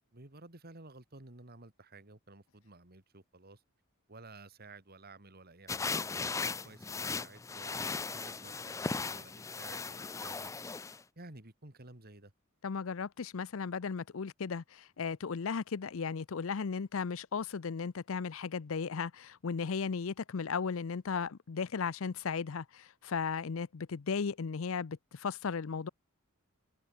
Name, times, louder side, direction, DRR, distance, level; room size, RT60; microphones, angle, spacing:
voice 1, 0.1-3.6 4.1-10.6 11.2-12.3, right 2 dB, 45° right, 2.9 m, -54 dB
sound 1, 5.7-11.0, left 4 dB, 15° left, 0.4 m, -37 dB
voice 2, 12.6-25.9, left 5 dB, 65° left, 0.6 m, -36 dB
head